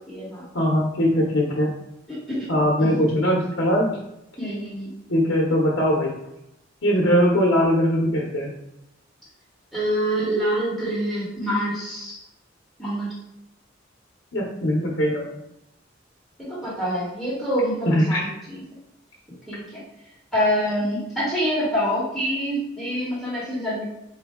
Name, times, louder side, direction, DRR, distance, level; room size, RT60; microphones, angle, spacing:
voice 1, 0.0-0.5 2.1-2.5 2.8-2.9 4.4-4.9 9.7-12.2 12.8-13.1 16.4-18.6 19.5-19.8 20.3-23.8, equal, ahead, -10 dB, 1.6 m, -26 dB
voice 2, 0.5-1.7 2.5-3.9 5.1-6.2 6.8-8.5 14.3-15.3 17.8-18.2, equal, 75° left, -3 dB, 0.9 m, -21 dB
4.4 x 2.7 x 3.7 m, 0.85 s
head